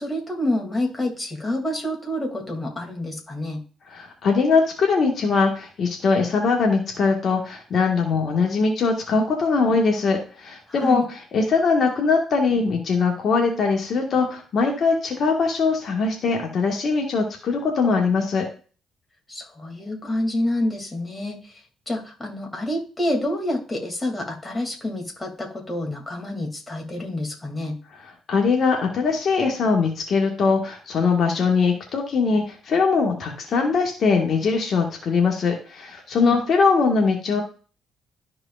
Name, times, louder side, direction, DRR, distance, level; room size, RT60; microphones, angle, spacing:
voice 1, 0.0-3.6 10.7-11.0 19.3-21.4 21.9-27.8 36.2-36.4, left 1 dB, 20° left, 1 dB, 2.8 m, -28 dB
voice 2, 3.9-18.4 28.3-37.4, left 4 dB, 55° left, 1 dB, 1.7 m, -21 dB
12.5 x 4.8 x 2.5 m, 0.37 s
cardioid pair, 85°, 0 cm